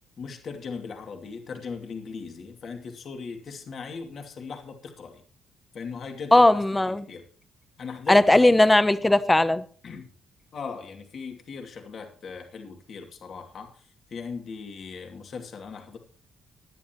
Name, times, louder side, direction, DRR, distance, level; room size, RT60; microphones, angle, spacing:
voice 1, 0.2-5.2 5.7-6.4 6.9-7.2 7.8-8.4 9.0-9.1 9.8-10.1 10.5-16.0, left 5 dB, 50° left, 2.4 m, -38 dB
voice 2, 6.3-7.0 8.1-9.6, left 1 dB, 10° left, 0.8 m, -18 dB
18.5 x 11.0 x 3.0 m
cardioid pair, 135°, 0 cm